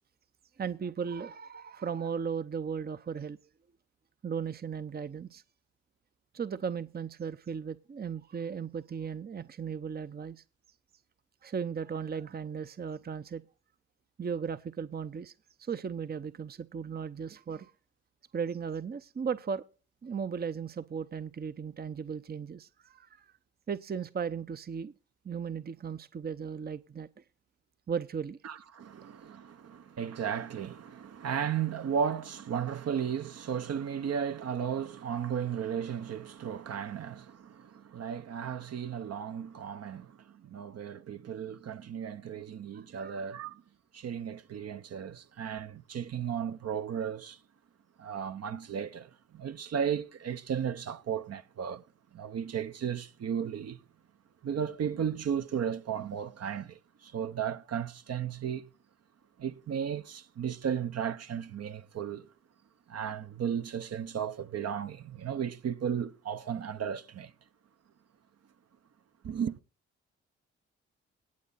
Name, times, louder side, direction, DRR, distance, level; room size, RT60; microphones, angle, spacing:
voice 1, 0.6-3.4 4.2-5.4 6.3-10.4 11.4-13.4 14.2-15.3 15.6-17.7 18.3-19.6 20.0-23.3 23.7-24.9 25.2-27.1 27.9-28.4 42.7-43.1, right 6 dB, 35° right, 0.8 m, -36 dB
voice 2, 28.4-43.6 43.9-47.4 48.0-51.8 52.1-53.8 54.4-58.7 59.4-62.3 62.9-67.3 69.2-69.6, right 8 dB, 55° right, 1.0 m, -35 dB
18.0 x 7.3 x 4.1 m
hypercardioid pair, 45°, 30 cm